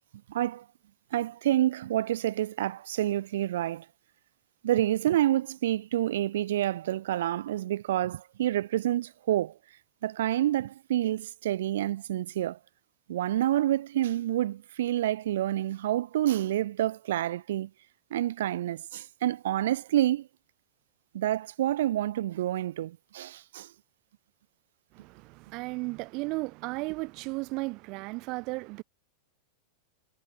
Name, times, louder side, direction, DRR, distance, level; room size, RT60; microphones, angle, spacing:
voice 1, 0.3-0.7 1.1-3.9 4.6-9.6 10.0-12.6 13.1-17.7 18.1-20.3 21.1-23.7, right 13 dB, 60° right, 1.3 m, -28 dB
voice 2, 24.9-28.8, right 26 dB, 40° right, 2.8 m, -35 dB
figure-of-eight pair, 90°, 0 cm